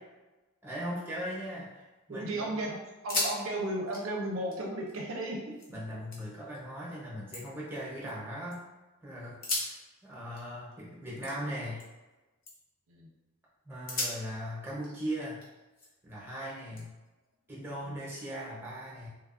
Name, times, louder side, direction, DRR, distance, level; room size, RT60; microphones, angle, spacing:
voice 1, 0.6-2.6 5.7-8.6 9.0-9.8 10.0-11.8 13.6-15.4 16.0-16.9 17.5-19.1, equal, 10° right, -6 dB, 0.7 m, -39 dB
sound 1, 1.3-2.1 2.4-2.5 2.9-3.4 3.7-5.7 6.1-6.6 7.0-8.6 9.3-12.1 12.4-12.8 13.3-13.4 13.9-16.1 16.8-17.9, left 2 dB, 40° left, 0.6 m, -39 dB
voice 2, 2.1-2.8 3.0-5.6 12.9-13.1 17.8-18.0, right 1 dB, 70° right, -1 dB, 0.5 m, -34 dB
3.0 x 2.3 x 2.4 m, 1.1 s
head